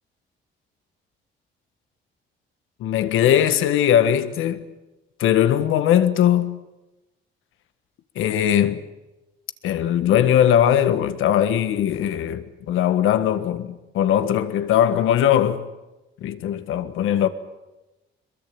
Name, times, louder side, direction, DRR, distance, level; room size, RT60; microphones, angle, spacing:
voice 1, 2.8-4.6 5.2-6.6 8.1-8.8 9.6-15.6 16.2-17.3, left 10 dB, 85° left, 1.6 m, -20 dB
23.0 x 21.5 x 8.7 m
cardioid pair, 90°, 20 cm